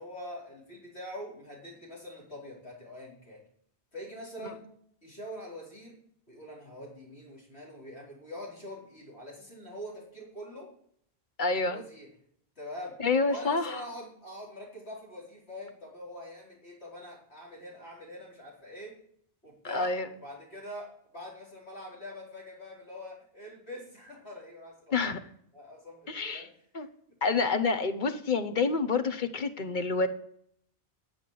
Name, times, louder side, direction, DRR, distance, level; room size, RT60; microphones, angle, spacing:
voice 1, 0.0-3.4 3.9-4.6 5.0-6.0 6.3-10.7 11.6-12.1 12.6-12.9 13.3-18.9 19.4-25.0 25.5-26.5 26.8-26.9, left 1 dB, 90° left, -4 dB, 4.9 m, -44 dB
voice 2, 11.4-11.8 13.0-13.8 19.7-20.1 24.9-25.2 26.1-26.5 26.7-26.9 27.2-30.1, left 4 dB, 50° left, 10 dB, 1.1 m, -28 dB
10.0 x 7.1 x 7.7 m, 0.66 s
omnidirectional pair, 1.1 m